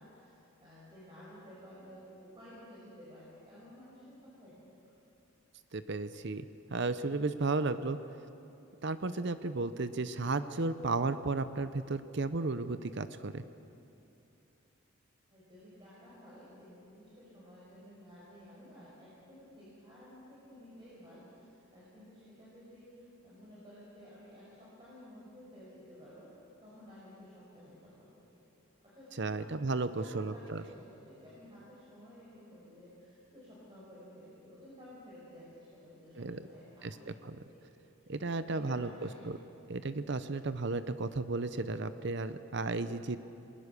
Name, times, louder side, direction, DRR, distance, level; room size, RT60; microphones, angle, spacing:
voice 1, 0.0-4.9 15.3-28.4 28.8-29.5 29.9-37.2 37.5-37.7 38.0-39.3, equal, 25° right, -8 dB, 5.6 m, -54 dB
voice 2, 5.7-8.0 8.8-13.4 29.2-30.6 36.2-36.4 36.8-37.1 38.1-38.9 39.2-39.4 39.7-43.2, right 3 dB, 55° right, 12 dB, 0.7 m, -34 dB
29.0 x 20.5 x 6.8 m, 2.8 s
head